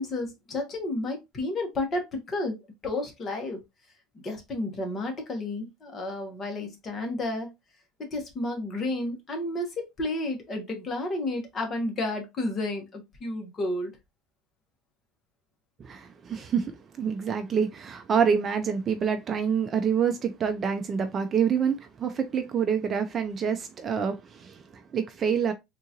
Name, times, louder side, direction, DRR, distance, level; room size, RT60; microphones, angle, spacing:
voice 1, 0.0-2.6 2.8-3.6 4.1-7.5 8.0-13.9, left 2 dB, 30° left, 1.1 m, -31 dB
voice 2, 15.8-25.5, right 7 dB, 30° right, 0.4 m, -27 dB
3.7 x 2.5 x 2.8 m
cardioid pair, 145°, 0 cm